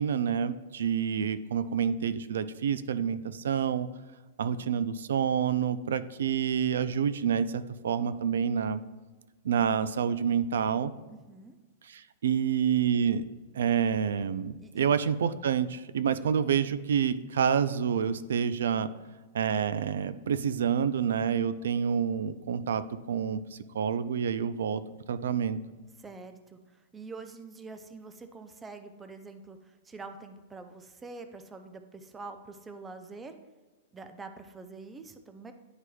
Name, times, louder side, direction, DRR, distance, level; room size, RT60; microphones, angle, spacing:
voice 1, 0.0-3.9 4.4-8.8 9.4-10.9 11.8-13.3 13.5-18.9 19.3-24.8 25.1-25.6, right 7 dB, 90° right, 14 dB, 0.3 m, -28 dB
voice 2, 4.4-4.8 11.1-11.6 14.6-14.9 26.0-33.4 33.9-35.5, right 3 dB, 10° right, 8 dB, 0.3 m, -46 dB
10.0 x 4.7 x 2.3 m, 1.2 s
supercardioid pair, 170°, 0 cm